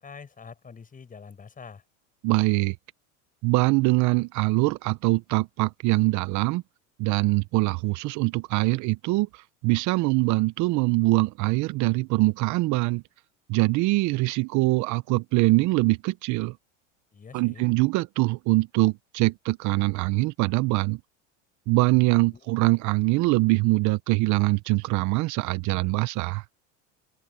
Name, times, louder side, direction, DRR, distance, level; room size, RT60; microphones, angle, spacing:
voice 1, 0.0-1.8 17.1-17.6 22.3-22.5, left 5 dB, 20° left, 6.7 m, -45 dB
voice 2, 2.2-2.8 3.4-6.6 7.0-13.0 13.5-16.5 17.3-21.0 21.7-26.4, right 22 dB, 50° right, 1.0 m, -23 dB
supercardioid pair, 105°, 37 cm